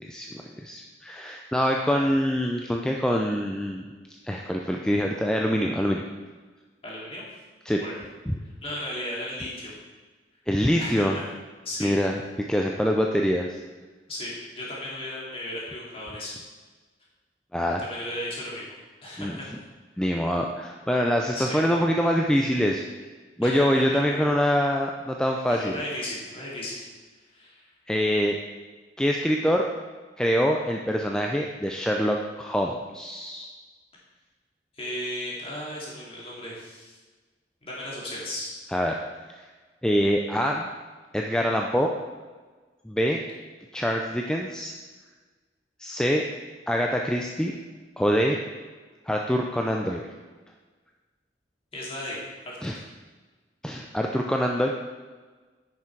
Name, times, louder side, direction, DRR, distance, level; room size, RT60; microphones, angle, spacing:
voice 1, 0.0-6.0 7.7-7.8 8.3-8.4 10.5-11.2 11.8-12.2 12.5-13.6 17.5-17.8 19.2-19.4 20.0-22.8 23.4-25.8 27.9-28.4 29.0-29.6 30.2-33.5 38.7-39.0 39.4-39.5 39.8-40.7 41.1-41.9 42.8-43.2 43.7-44.7 45.8-46.2 46.7-47.5 48.0-48.4 49.1-50.0 52.6-52.8 53.6-54.7, equal, 5° left, 1 dB, 0.5 m, -25 dB
voice 2, 6.8-7.2 7.7-7.9 8.6-9.7 10.8-11.2 11.6-11.9 14.1-16.3 17.8-18.7 19.0-19.5 21.3-21.6 23.4-23.6 25.5-26.9 27.3-27.7 34.7-37.0 37.6-38.5 51.7-52.2 52.4-52.7, left 1 dB, 35° left, -5 dB, 2.7 m, -35 dB
10.0 x 6.1 x 4.6 m, 1.4 s
head